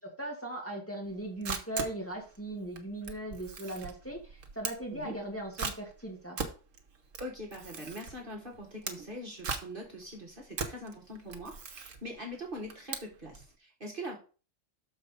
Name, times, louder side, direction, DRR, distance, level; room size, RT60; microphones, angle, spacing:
voice 1, 0.2-6.4, right 1 dB, 10° left, -2 dB, 2.2 m, -38 dB
Camera, 1.1-13.5, right 5 dB, 75° right, 1.4 m, -40 dB
voice 2, 7.2-14.2, equal, 40° right, -1 dB, 1.8 m, -42 dB
6.6 x 4.6 x 6.4 m, 0.36 s
omnidirectional pair, 1.3 m